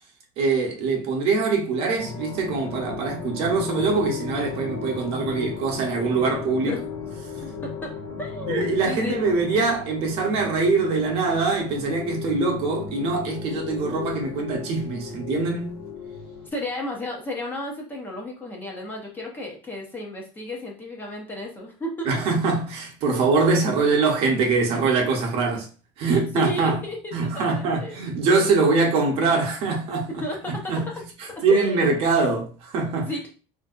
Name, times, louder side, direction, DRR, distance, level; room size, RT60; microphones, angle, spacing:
voice 1, 0.4-6.8 8.5-15.8 22.1-25.7 26.0-26.8 27.1-30.1 30.5-30.8 31.2-33.1, right 4 dB, 45° right, 0.8 m, -23 dB
sound 1, 2.0-16.5, left 6 dB, 85° left, 1.0 m, -35 dB
voice 2, 8.2-9.2 16.5-22.1 23.1-23.3 26.0-28.0 30.2-30.5 31.5-31.9 32.9-33.3, left 1 dB, 15° left, 0.6 m, -33 dB
3.4 x 2.6 x 2.4 m
cardioid pair, 155°, 13 cm